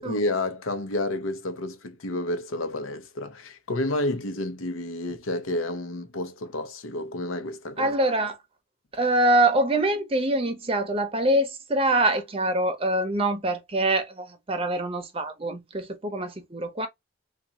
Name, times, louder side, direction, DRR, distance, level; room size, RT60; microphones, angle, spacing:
voice 1, 0.0-7.9, left 2 dB, 90° left, 0.7 m, -30 dB
voice 2, 7.8-8.4 8.9-16.9, right 1 dB, 30° right, 0.7 m, -24 dB
3.5 x 2.4 x 3.9 m
head